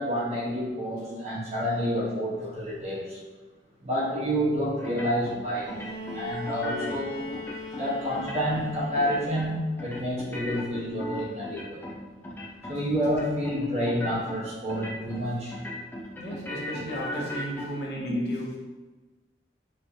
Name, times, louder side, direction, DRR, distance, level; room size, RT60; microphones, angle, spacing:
voice 1, 0.0-3.2 3.8-5.8 6.1-7.3 7.7-11.9 12.7-15.6 18.1-18.2, equal, 40° right, -5 dB, 1.1 m, -29 dB
sound 1, 4.8-5.4 5.7-7.0 7.3-7.8 8.1-8.7 9.0-9.5 9.8-12.0 12.2-12.8 13.0-13.6 13.9-14.4 14.7-15.2 15.5-17.7, left 1 dB, 10° left, 0.4 m, -37 dB
Bowed string instrument, 5.6-9.6 10.9-11.0, left 3 dB, 85° left, 1.3 m, -39 dB
voice 2, 16.2-18.6, right 1 dB, 65° left, -4 dB, 1.0 m, -35 dB
4.4 x 3.2 x 2.7 m, 1.2 s
head